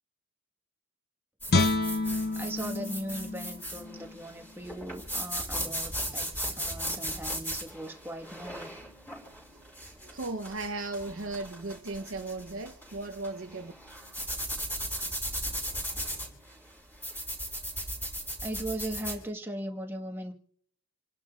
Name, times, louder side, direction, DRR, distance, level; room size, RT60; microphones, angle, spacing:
sound 1, 1.4-19.2, equal, 10° left, 4.9 m, -37 dB
Guitar, 1.5-4.6 5.1-5.2, left 2 dB, 50° left, 0.5 m, -30 dB
voice 1, 2.4-6.3 6.5-8.7 18.4-20.3, right 1 dB, 10° right, 1.4 m, -38 dB
voice 2, 10.0-13.7, right 2 dB, 70° right, 0.8 m, -36 dB
28.5 x 11.5 x 2.4 m
head